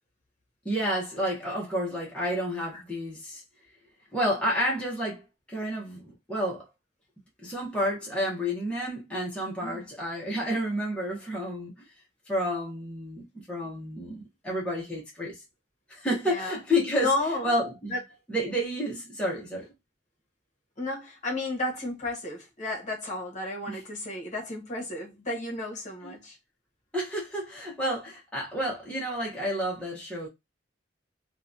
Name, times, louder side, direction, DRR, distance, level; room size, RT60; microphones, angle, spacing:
voice 1, 0.6-3.4 4.1-6.7 7.4-11.9 12.3-15.4 15.9-17.1 17.4-18.0 18.3-19.7 23.7-23.8 26.0-26.2 26.9-30.3, equal, 5° left, 0.7 m, -30 dB
voice 2, 16.2-16.5 17.0-17.6 17.9-18.0 20.8-26.4, left 2 dB, 40° left, 0.9 m, -32 dB
2.7 x 2.2 x 2.4 m
head